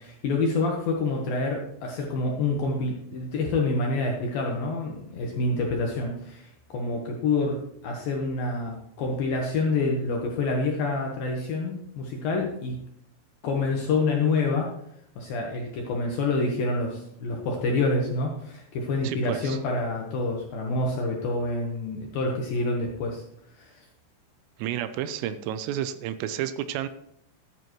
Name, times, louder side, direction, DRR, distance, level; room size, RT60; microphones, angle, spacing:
voice 1, 0.0-12.8 13.4-14.7 15.2-23.2 23.5-23.9, left 3 dB, 75° left, 0 dB, 2.1 m, -27 dB
voice 2, 19.0-19.6 24.6-26.9, right 11 dB, 85° right, 11 dB, 3.3 m, -31 dB
13.5 x 11.0 x 3.1 m, 0.73 s
omnidirectional pair, 6.0 m